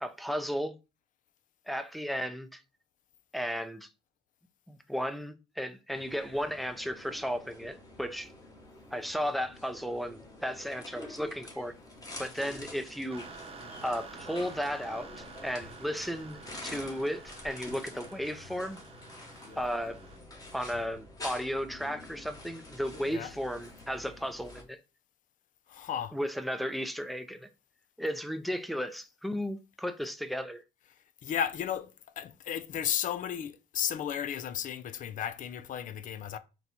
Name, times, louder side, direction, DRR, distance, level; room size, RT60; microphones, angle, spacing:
voice 1, 0.0-0.7 1.7-2.6 3.3-3.9 4.7-8.3 8.9-11.7 12.2-13.2 13.8-18.8 19.6-20.0 20.5-24.8 26.1-27.5 28.0-30.6, equal, ahead, 0.5 m, -34 dB
sound 1, 5.9-24.6, left 2 dB, 20° left, 1.3 m, -47 dB
sound 2, 13.1-20.2, right 5 dB, 35° right, 0.8 m, -50 dB
voice 2, 25.7-26.2 31.2-31.9 32.2-36.4, left 9 dB, 55° left, 0.5 m, -34 dB
3.9 x 2.3 x 4.3 m
supercardioid pair, 85°, 16 cm